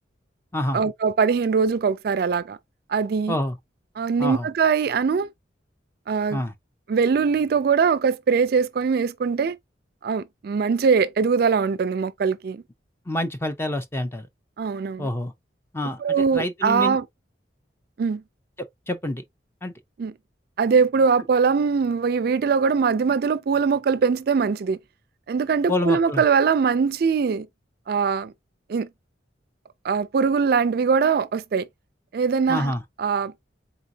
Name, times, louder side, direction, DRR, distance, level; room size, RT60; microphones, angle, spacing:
voice 1, 0.7-2.6 2.9-3.4 4.0-5.3 6.1-6.4 6.9-9.6 10.0-12.6 14.6-15.1 16.0-17.0 18.0-18.2 20.0-20.1 20.6-24.8 25.3-27.5 27.9-28.3 28.7-28.9 29.8-31.7 32.1-33.3, right 5 dB, 55° right, 0.3 m, -22 dB
voice 2, 13.1-14.3 15.0-15.3 15.7-16.0 16.3-17.0 18.9-19.2 19.6-19.7 25.7-26.2 32.5-32.8, left 1 dB, 15° left, 0.6 m, -27 dB
4.0 x 3.8 x 2.7 m
head